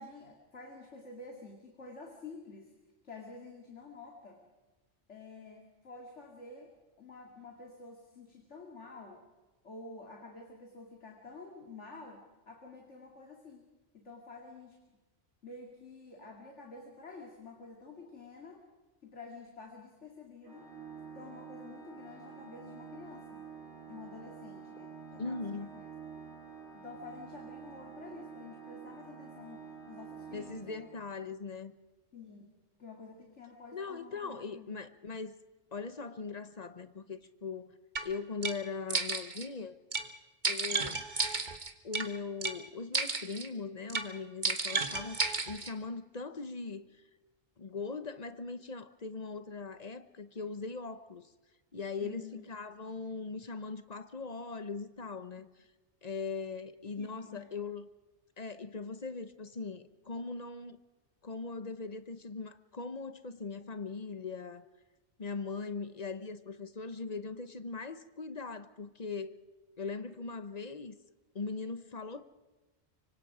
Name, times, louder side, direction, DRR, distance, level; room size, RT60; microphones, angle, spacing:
voice 1, 0.0-2.8 3.0-4.4 5.1-9.2 9.6-14.8 15.4-18.7 19.0-20.7 21.1-23.5 23.9-25.8 26.2-26.3 26.7-30.9 32.1-34.8 52.0-52.5 56.9-57.5, left 3 dB, 90° left, 2.7 m, -50 dB
Organ, 20.4-31.3, right 6 dB, 65° right, 3.1 m, -48 dB
voice 2, 25.2-25.7 30.3-31.7 33.7-35.4 35.7-37.7 38.0-39.8 40.4-41.0 41.8-45.2 45.5-46.9 47.6-51.3 51.7-55.7 56.0-57.8 58.4-60.8 61.2-64.6 65.2-69.4 69.8-70.9 71.3-72.2, left 4 dB, 40° left, 1.0 m, -40 dB
sound 1, 38.0-38.1 38.4-38.6 38.9-39.5 39.9-40.1 40.4-42.1 42.4-42.6 42.9-43.5 43.9-44.1 44.4-45.7, right 4 dB, 40° right, 1.5 m, -32 dB
25.0 x 25.0 x 5.0 m
omnidirectional pair, 1.2 m